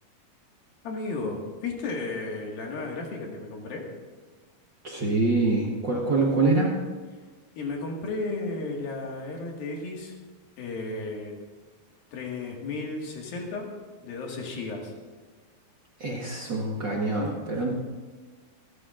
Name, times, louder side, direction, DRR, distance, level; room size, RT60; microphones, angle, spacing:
voice 1, 0.8-3.9 7.6-10.2 10.6-11.4 12.1-13.7 14.0-14.9, left 3 dB, 70° left, 0 dB, 3.6 m, -34 dB
voice 2, 4.8-6.7 16.0-17.7, right 3 dB, 90° right, -3 dB, 1.0 m, -25 dB
27.0 x 11.0 x 2.5 m, 1.3 s
omnidirectional pair, 4.5 m